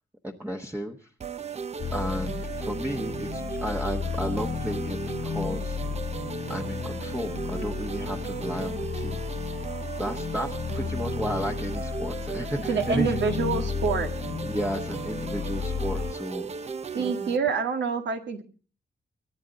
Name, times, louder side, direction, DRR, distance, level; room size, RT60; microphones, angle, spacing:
voice 1, 0.2-1.1 1.9-5.8 6.5-9.3 10.0-13.2 14.4-16.5 16.9-17.3, equal, 10° right, 1 dB, 1.2 m, -33 dB
sound 1, 1.2-17.4, right 5 dB, 35° right, 0.7 m, -36 dB
sound 2, 1.8-16.1, left 7 dB, 45° left, 0.8 m, -33 dB
voice 2, 12.7-14.1 16.9-18.4, right 5 dB, 80° right, 5 dB, 2.0 m, -26 dB
23.5 x 10.5 x 4.0 m, 0.38 s
wide cardioid pair, 120°, 18 cm